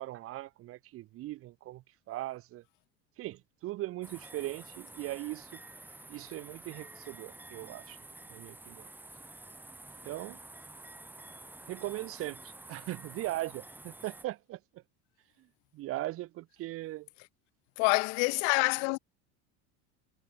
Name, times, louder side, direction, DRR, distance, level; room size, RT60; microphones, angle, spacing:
voice 1, 0.0-2.6 3.2-5.6 6.1-8.0 8.3-8.9 10.0-10.4 11.7-14.8 15.7-17.1, right 16 dB, 40° right, 1.6 m, -39 dB
sound 1, 4.0-14.2, right 2 dB, 5° right, 4.5 m, -50 dB
voice 2, 17.8-19.0, left 40 dB or more, 70° left, 2.4 m, -26 dB
cardioid pair, 175°, 35 cm